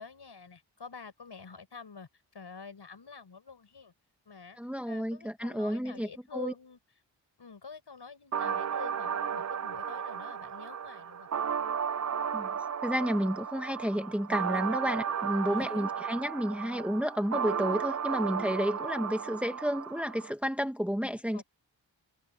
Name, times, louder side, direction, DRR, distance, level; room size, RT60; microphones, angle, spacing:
voice 1, 0.0-3.9 4.2-4.6 4.9-6.8 7.4-11.3 15.4-16.1 21.3-21.4, left 5 dB, 55° left, 6.6 m, -47 dB
voice 2, 4.6-6.5 12.3-12.5 12.8-21.4, equal, 5° right, 1.7 m, -31 dB
sound 1, 8.3-20.3, right 7 dB, 35° right, 0.6 m, -34 dB
supercardioid pair, 40°, 49 cm